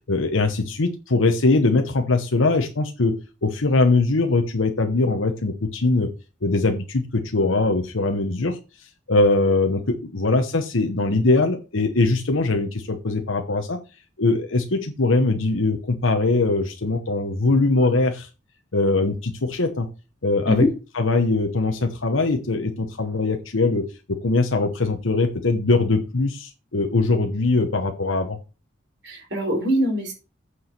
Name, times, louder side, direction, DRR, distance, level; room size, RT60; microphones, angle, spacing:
voice 1, 0.1-6.1 6.4-8.6 9.1-13.8 14.2-18.3 18.7-19.9 20.2-20.6 21.0-28.4, left 3 dB, 90° left, 5 dB, 1.1 m, -21 dB
voice 2, 29.0-30.1, equal, 60° right, 1 dB, 4.7 m, -23 dB
8.5 x 4.9 x 6.0 m, 0.31 s
head